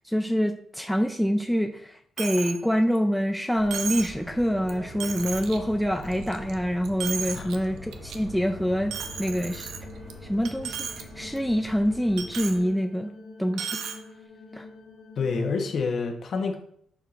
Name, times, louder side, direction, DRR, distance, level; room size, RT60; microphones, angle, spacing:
voice 1, 0.1-9.7 10.2-13.1 13.4-13.7 14.5-14.7, equal, ahead, 4 dB, 0.3 m, -26 dB
Coin (dropping), 2.2-2.6 3.0-3.1 3.7-4.2 4.7-4.8 5.0-5.6 6.0-6.5 6.8-7.6 7.9-8.2 8.9-10.1 10.5-11.0 11.4-11.5 12.2-12.6 13.5-14.0, right 7 dB, 85° right, 0.7 m, -34 dB
sound 1, 3.6-12.6, equal, 55° right, 2.4 m, -43 dB
voice 2, 7.4-7.8 15.2-16.6, left 4 dB, 50° left, 4 dB, 1.0 m, -28 dB
sound 2, 9.0-15.5, left 3 dB, 85° left, 2.1 m, -47 dB
11.0 x 4.6 x 2.5 m, 0.65 s
cardioid pair, 155°, 0 cm